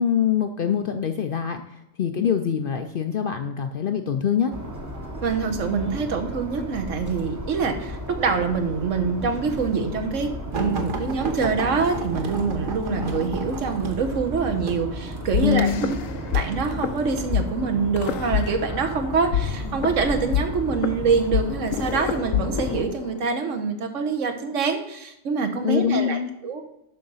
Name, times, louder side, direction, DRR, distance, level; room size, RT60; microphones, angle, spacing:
voice 1, 0.0-1.6 2.0-4.5 15.4-15.8 25.6-26.3, left 8 dB, 60° left, 6 dB, 0.6 m, -24 dB
sound 1, 4.5-22.8, equal, 15° right, 0.9 m, -34 dB
voice 2, 5.2-15.9 16.3-26.6, right 5 dB, 70° right, 5 dB, 1.3 m, -25 dB
sound 2, 10.5-17.3 18.1-18.5 19.5-20.1 20.9-21.0 21.4-21.5, right 2 dB, 45° right, 1.0 m, -34 dB
sound 3, 15.3-16.4 16.7-16.9 17.3-17.4 18.0-19.0 19.3-23.3, left 10 dB, 75° left, 1.0 m, -26 dB
11.5 x 3.9 x 5.5 m, 0.85 s
omnidirectional pair, 1.4 m